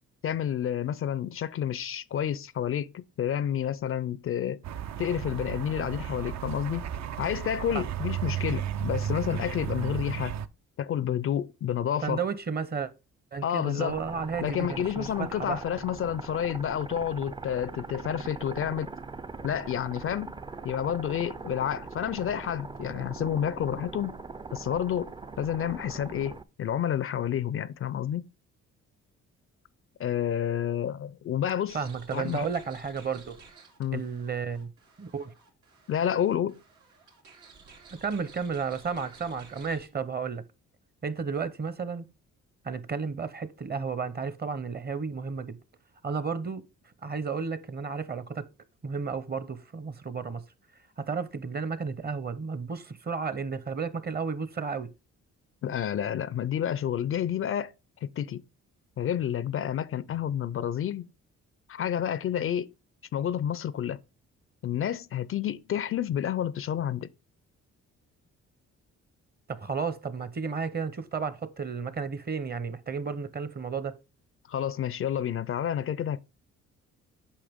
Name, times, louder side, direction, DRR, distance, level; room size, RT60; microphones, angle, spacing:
voice 1, 0.2-4.6 5.0-6.9 7.2-10.3 10.8-12.2 13.4-14.0 14.4-18.9 19.4-20.3 20.6-24.2 24.5-28.2 30.0-31.8 32.1-32.5 33.8-34.0 35.9-36.6 55.6-57.7 58.0-58.4 59.0-61.1 61.7-62.7 63.1-64.0 64.6-67.1 74.5-76.2, left 9 dB, 45° left, 0.4 m, -30 dB
sound 1, 4.6-10.5, right 9 dB, 65° right, 0.6 m, -33 dB
voice 2, 12.0-12.9 13.3-15.6 31.7-33.4 33.9-34.7 35.0-35.3 38.0-40.4 41.0-42.1 42.6-45.6 46.0-46.6 47.0-48.5 48.8-50.4 51.0-54.9 69.5-74.0, right 5 dB, 30° right, 0.8 m, -33 dB
sound 2, 13.9-26.4, right 4 dB, 15° right, 0.4 m, -41 dB
sound 3, 31.7-39.9, right 5 dB, 90° right, 2.5 m, -54 dB
8.5 x 5.6 x 3.5 m
cardioid pair, 90°, 30 cm